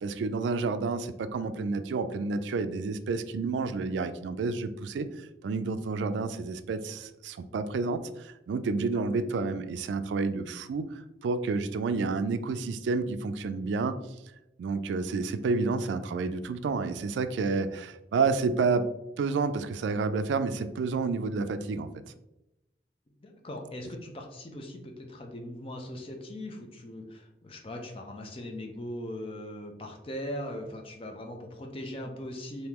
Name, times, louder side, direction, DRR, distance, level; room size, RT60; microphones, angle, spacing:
voice 1, 0.0-5.1 5.4-14.0 14.6-18.8 19.2-21.9, right 4 dB, 90° right, 11 dB, 0.3 m, -30 dB
voice 2, 23.2-32.7, left 1 dB, 30° left, 2 dB, 0.5 m, -40 dB
3.6 x 2.7 x 3.0 m, 0.91 s
head